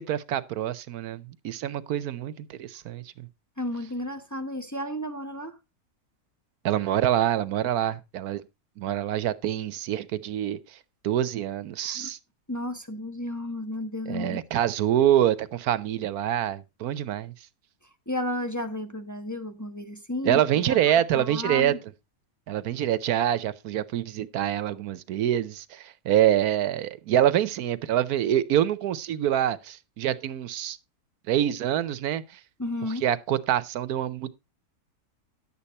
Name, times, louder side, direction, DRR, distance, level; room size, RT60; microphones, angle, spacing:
voice 1, 0.0-3.3 6.6-8.4 8.8-10.6 11.0-12.2 14.1-17.3 20.2-21.7 22.5-30.8 31.3-32.2 33.0-34.3, right 11 dB, 85° right, 1.3 m, -26 dB
voice 2, 3.6-5.6 11.8-12.1 12.5-14.4 18.1-20.8 21.1-21.8 32.6-33.0, left 1 dB, 15° left, 1.1 m, -33 dB
11.0 x 8.4 x 4.2 m
omnidirectional pair, 1.6 m